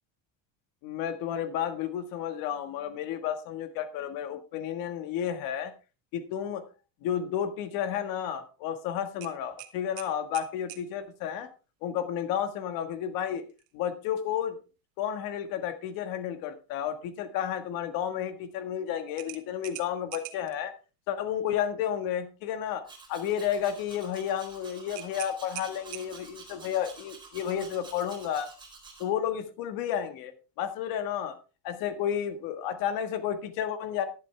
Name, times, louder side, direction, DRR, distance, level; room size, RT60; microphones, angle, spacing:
voice 1, 0.8-5.7 6.1-6.6 7.0-11.5 11.8-13.5 13.7-14.6 15.0-20.7 21.1-28.5 29.0-31.3 31.6-34.0, left 9 dB, 60° left, 9 dB, 1.7 m, -32 dB
sound 1, 9.2-10.9 13.5-13.7 14.2-14.3 19.2-20.6 24.9-26.4, right 15 dB, 75° right, 1.6 m, -43 dB
Domestic sounds home sounds, 22.8-29.0, right 4 dB, 10° right, 4.1 m, -49 dB
11.5 x 11.5 x 3.4 m, 0.33 s
cardioid pair, 150°, 39 cm